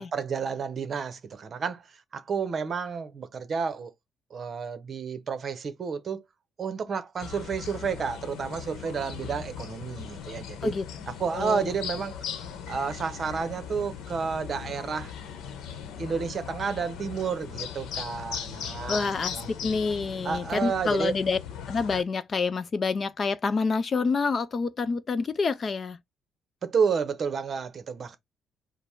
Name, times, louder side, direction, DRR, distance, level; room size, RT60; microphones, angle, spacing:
voice 1, 0.0-1.9 2.1-3.9 4.3-6.2 6.6-10.7 11.2-12.2 12.7-15.1 16.0-19.5 20.2-21.1 26.6-28.2, right 6 dB, 40° right, 0.8 m, -31 dB
sound 1, 7.2-22.0, left 7 dB, 75° left, 0.9 m, -39 dB
voice 2, 11.3-11.7 18.9-21.4 21.7-26.0, left 4 dB, 30° left, 0.4 m, -27 dB
5.2 x 2.1 x 4.4 m
cardioid pair, 140°, 0 cm